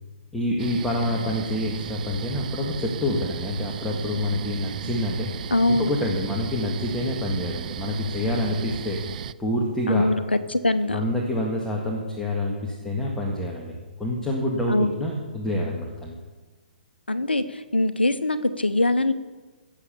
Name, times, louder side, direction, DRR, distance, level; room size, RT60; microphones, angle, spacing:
voice 1, 0.3-5.3 5.7-9.0 9.4-10.1 10.9-13.7 14.0-16.2, left 1 dB, 5° left, -3 dB, 2.0 m, -27 dB
sound 1, 0.6-9.3, right 10 dB, 50° right, 0.5 m, -35 dB
voice 2, 5.5-5.9 9.9-10.2 10.5-11.0 14.7-15.0 17.1-19.1, left 2 dB, 90° left, 12 dB, 1.0 m, -22 dB
17.5 x 7.5 x 6.9 m, 1.3 s
figure-of-eight pair, 130°, 5 cm